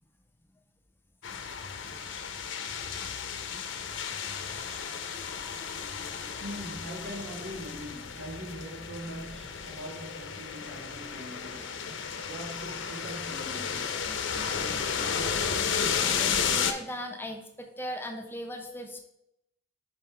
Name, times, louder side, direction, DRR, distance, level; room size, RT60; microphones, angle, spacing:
sound 1, 1.2-16.7, left 7 dB, 80° left, 0.6 m, -33 dB
voice 1, 4.4-5.9 16.0-19.0, equal, 10° left, 0.5 m, -40 dB
voice 2, 6.4-11.8 12.3-14.0, equal, 90° right, 1.5 m, -42 dB
5.1 x 3.6 x 5.7 m
head